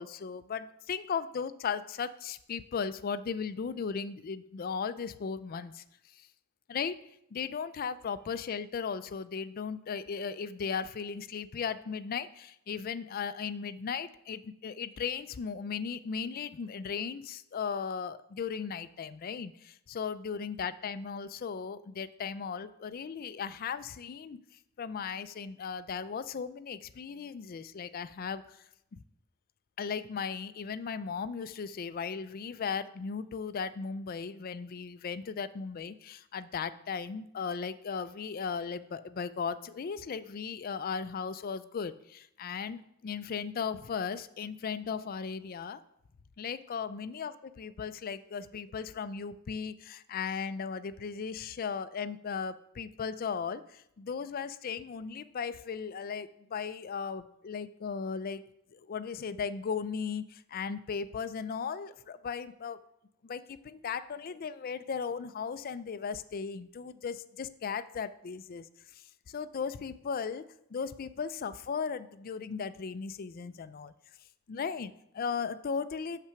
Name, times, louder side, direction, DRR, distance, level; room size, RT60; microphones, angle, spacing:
voice 1, 0.0-5.8 6.1-6.3 6.7-7.0 7.3-24.4 24.8-28.6 28.9-29.0 29.8-45.8 46.4-58.4 58.7-62.8 63.2-70.4 70.7-73.9 74.5-76.2, left 6 dB, 40° left, 13 dB, 0.4 m, -37 dB
6.7 x 5.9 x 5.7 m, 0.77 s
head